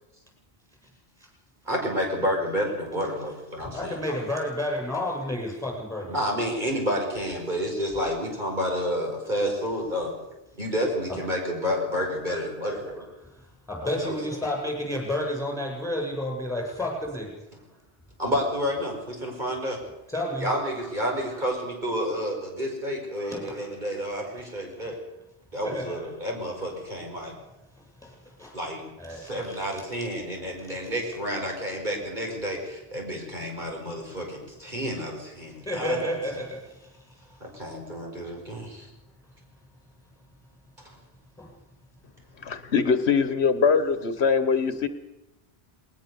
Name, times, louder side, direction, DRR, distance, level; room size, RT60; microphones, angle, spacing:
voice 1, 1.7-4.2 6.1-10.1 10.5-13.1 13.8-14.4 18.2-19.8 20.4-25.0 25.5-27.3 28.5-36.2 37.4-38.9, equal, 45° right, 0 dB, 5.3 m, -30 dB
voice 2, 3.7-6.2 11.1-11.2 12.3-12.4 13.2-17.3 20.1-20.5 20.8-20.9 21.3-21.4 23.2-23.9 24.8-24.9 25.6-26.1 27.2-27.3 28.0-28.6 29.0-29.8 30.7-30.8 35.6-37.1 38.5-38.6 41.4-41.5, left 1 dB, 5° left, 1 dB, 7.6 m, -32 dB
voice 3, 42.4-44.9, left 5 dB, 80° left, 11 dB, 1.5 m, -22 dB
21.0 x 19.5 x 6.9 m, 0.94 s
omnidirectional pair, 1.1 m